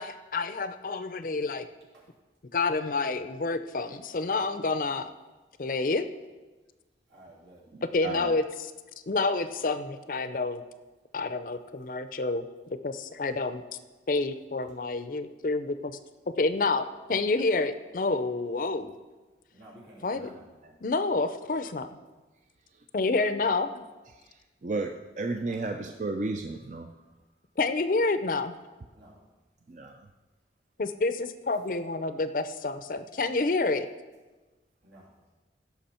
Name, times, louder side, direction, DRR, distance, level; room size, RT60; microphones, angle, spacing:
voice 1, 0.0-1.7 2.5-5.1 5.6-6.1 7.9-8.7 9.1-10.6 11.1-12.4 12.8-13.6 14.1-16.0 16.4-18.9 20.0-20.3 20.8-21.9 22.9-23.8 27.6-28.6 30.8-33.9, left 3 dB, 50° left, 11 dB, 0.5 m, -28 dB
voice 2, 7.1-7.6 19.5-20.4 25.4-25.6 28.9-29.2 34.8-35.1, right 1 dB, 80° right, -4 dB, 3.1 m, -52 dB
voice 3, 8.0-8.3 20.6-20.7 24.6-26.9 29.7-30.0, right 3 dB, 40° right, 5 dB, 0.4 m, -33 dB
16.0 x 5.9 x 4.3 m, 1.2 s
head